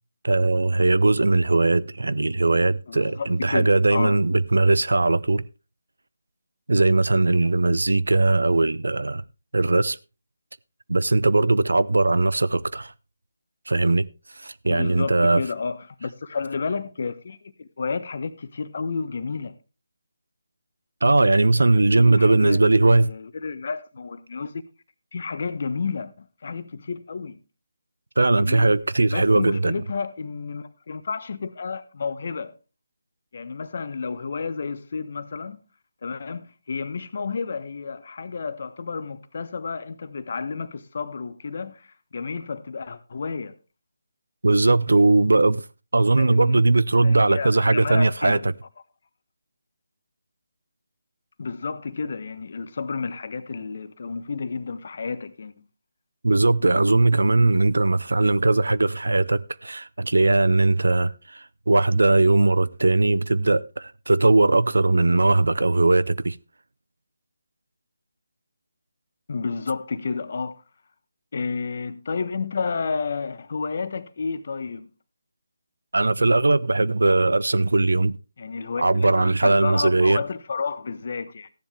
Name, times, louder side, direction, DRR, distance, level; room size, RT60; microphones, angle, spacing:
voice 1, 0.2-5.4 6.7-9.2 9.5-10.0 10.9-12.9 13.7-14.1 14.4-15.4 21.0-23.1 28.2-29.8 44.4-45.7 45.9-48.5 56.2-66.4 75.9-78.2 78.8-80.2, right 2 dB, 70° right, 0.6 m, -19 dB
voice 2, 2.9-4.2 14.7-19.6 21.6-24.6 25.1-27.4 28.4-28.7 29.1-32.5 33.3-35.6 36.0-43.6 46.2-46.6 47.0-48.5 51.4-55.6 69.3-70.6 71.3-74.9 78.4-81.5, left 5 dB, 50° left, 1.2 m, -31 dB
15.0 x 10.5 x 3.4 m
figure-of-eight pair, 150°, 0 cm